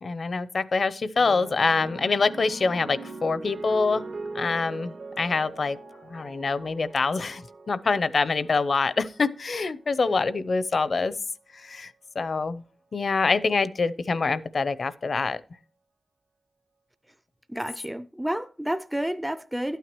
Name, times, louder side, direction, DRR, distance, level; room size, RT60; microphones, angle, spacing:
voice 1, 0.0-4.1 4.3-5.8 6.1-11.1 11.6-11.9 12.2-12.6 12.9-15.4, left 4 dB, 55° left, 0.6 m, -25 dB
sound 1, 1.2-9.8 10.7-11.0, right 3 dB, 65° right, 1.0 m, -41 dB
voice 2, 17.5-19.8, equal, 5° right, 0.4 m, -30 dB
12.0 x 9.2 x 3.0 m
wide cardioid pair, 90°, 0 cm